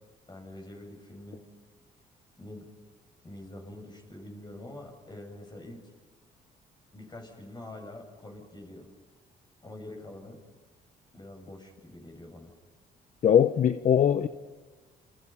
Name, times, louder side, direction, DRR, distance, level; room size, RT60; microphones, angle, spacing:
voice 1, 0.3-1.4 2.4-2.7 3.2-5.8 6.9-8.9 9.6-10.4 11.1-12.5, left 1 dB, 30° left, 7.4 m, -45 dB
voice 2, 13.2-14.3, left 9 dB, 55° left, 0.9 m, -21 dB
28.5 x 28.0 x 5.8 m
cardioid pair, 90°, 16 cm